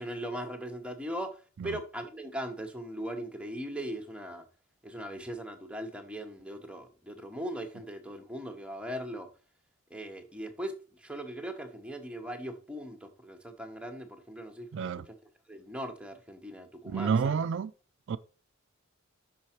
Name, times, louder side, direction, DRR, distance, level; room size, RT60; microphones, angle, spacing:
voice 1, 0.0-4.4 4.8-9.3 9.9-14.7 15.1-15.2 15.5-17.3, equal, 5° right, 0.8 m, -39 dB
voice 2, 14.7-15.0 16.9-17.7 18.1-18.2, right 6 dB, 60° right, 0.4 m, -29 dB
5.7 x 4.7 x 4.3 m
head